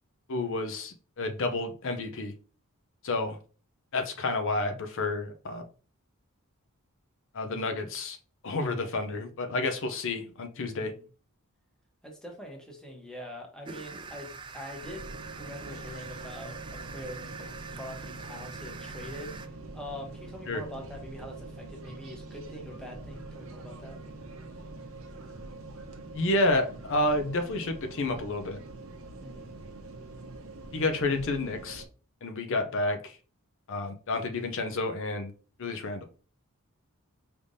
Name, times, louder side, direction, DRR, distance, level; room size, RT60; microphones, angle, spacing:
voice 1, 0.3-2.3 3.0-3.4 3.9-5.6 7.3-8.2 8.4-10.9 20.5-20.6 26.1-28.6 30.7-31.8 32.2-33.2 33.7-35.3 35.6-36.1, left 2 dB, 60° left, 6 dB, 0.5 m, -30 dB
voice 2, 10.7-11.0 12.0-19.4 19.7-24.0 29.2-29.6, left 1 dB, 5° left, 0 dB, 1.0 m, -44 dB
sound 1, 13.6-19.5, right 5 dB, 20° right, 0.3 m, -44 dB
sound 2, 14.8-31.9, right 2 dB, 65° right, 0.8 m, -44 dB
5.0 x 3.3 x 2.6 m, 0.38 s
head